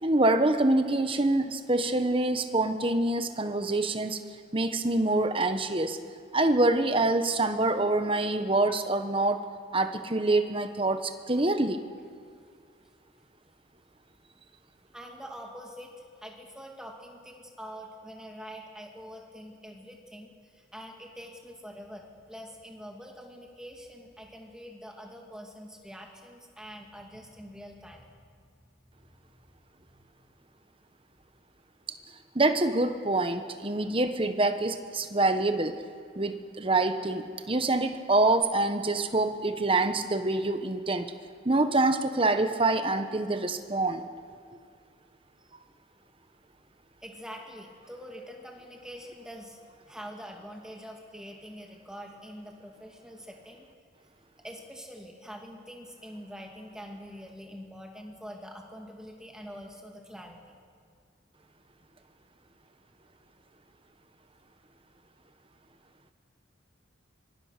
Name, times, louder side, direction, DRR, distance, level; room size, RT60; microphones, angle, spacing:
voice 1, 0.0-4.2 4.5-6.0 6.3-9.4 9.7-11.8 32.3-35.8 36.2-41.1 41.4-44.0, right 2 dB, 25° right, 8 dB, 1.2 m, -26 dB
voice 2, 14.9-28.3 29.9-30.0 47.0-49.6 49.9-53.7 54.4-60.4, equal, 5° right, 1 dB, 2.5 m, -45 dB
25.0 x 21.0 x 6.7 m, 2.1 s
head